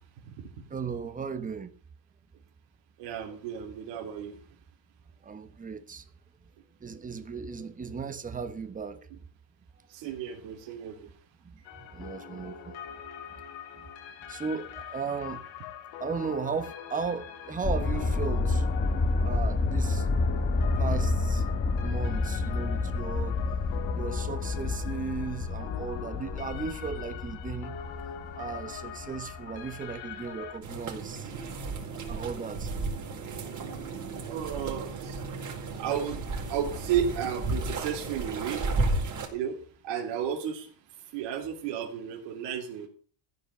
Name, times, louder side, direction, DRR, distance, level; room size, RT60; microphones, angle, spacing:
voice 1, 0.7-1.7 5.2-6.0 6.8-9.1 11.4-11.5 11.9-12.8 14.3-15.4 16.0-18.7 19.2-20.1 20.8-21.4 21.8-23.4 23.9-27.8 28.4-31.3 32.1-32.7, right 5 dB, 15° right, 1.2 m, -36 dB
voice 2, 3.0-4.4 9.1-9.2 9.9-11.1 31.3-31.4 34.3-35.2 35.8-38.6 39.3-39.6 39.8-40.7 41.1-42.9, right 8 dB, 65° right, 3.3 m, -33 dB
sound 1, 11.6-30.6, left 9 dB, 80° left, 2.2 m, -43 dB
sound 2, 17.6-30.3 30.8-30.9, left 3 dB, 20° left, 1.2 m, -29 dB
sound 3, 30.6-39.3, right 3 dB, 40° right, 4.6 m, -33 dB
15.0 x 5.8 x 8.2 m
cardioid pair, 140°, 46 cm